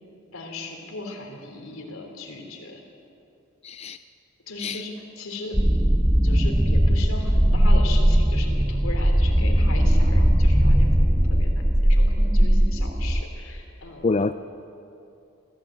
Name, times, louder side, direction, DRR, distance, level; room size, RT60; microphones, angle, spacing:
voice 1, 0.3-2.8 4.5-5.6 6.2-14.1, left 2 dB, 85° left, 3 dB, 3.6 m, -37 dB
voice 2, 3.6-4.0 4.6-4.8 14.0-14.3, left 3 dB, 30° left, 10 dB, 0.4 m, -25 dB
sound 1, 5.5-13.2, equal, 10° right, 0.7 m, -19 dB
24.0 x 15.5 x 8.8 m, 2.7 s
head